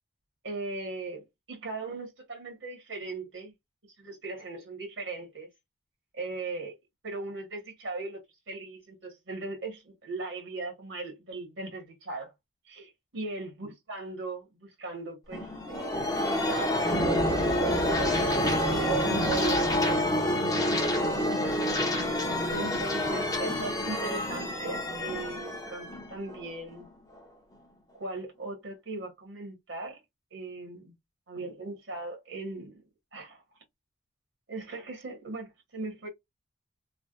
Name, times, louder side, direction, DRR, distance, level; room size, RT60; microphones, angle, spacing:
voice 1, 0.4-3.5 4.0-5.5 6.1-6.7 7.0-8.2 8.5-12.3 12.6-16.9 17.4-18.3 18.7-20.3 22.5-26.9 27.9-30.0 30.3-30.9 31.3-32.8 33.1-33.4 34.5-36.1, right 2 dB, 75° right, 1.2 m, -39 dB
sound 1, 15.3-26.8, left 1 dB, 20° left, 0.6 m, -28 dB
3.2 x 2.1 x 2.4 m
head